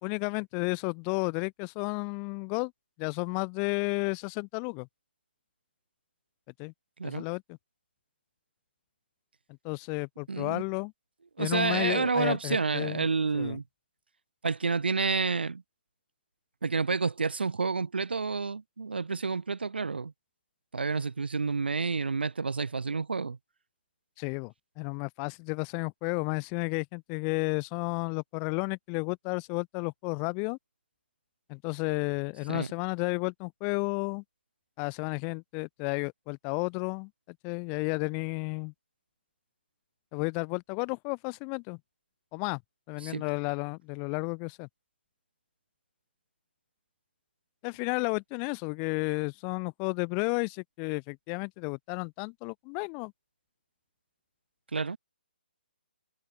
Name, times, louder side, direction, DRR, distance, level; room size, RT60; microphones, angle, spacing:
voice 1, 0.0-2.7 3.0-4.9 6.6-6.7 7.0-7.4 9.6-10.9 11.4-13.1 13.3-13.6 24.2-30.6 31.5-34.2 34.8-37.1 37.4-38.7 40.1-41.8 42.3-42.6 42.9-44.7 47.6-53.1, left 40 dB or more, 25° left, 4.4 m, -32 dB
voice 2, 10.3-10.6 11.4-13.6 14.4-15.6 16.6-20.1 20.7-23.4 32.5-32.7 43.0-43.2 54.7-55.0, right 4 dB, 75° right, 4.1 m, -29 dB
figure-of-eight pair, 140°, 6 cm